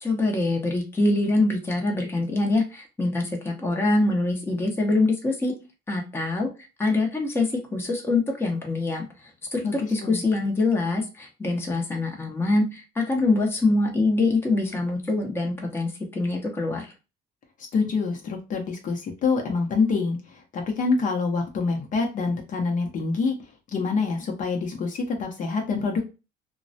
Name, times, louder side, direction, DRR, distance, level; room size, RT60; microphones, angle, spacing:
voice 1, 0.0-5.5 5.9-6.5 6.8-16.9, left 2 dB, 15° left, 1 dB, 0.7 m, -24 dB
voice 2, 17.7-20.2 20.5-23.4 23.7-26.0, left 4 dB, 50° left, 2 dB, 0.7 m, -26 dB
2.2 x 2.1 x 2.6 m, 0.30 s
cardioid pair, 110°, 17 cm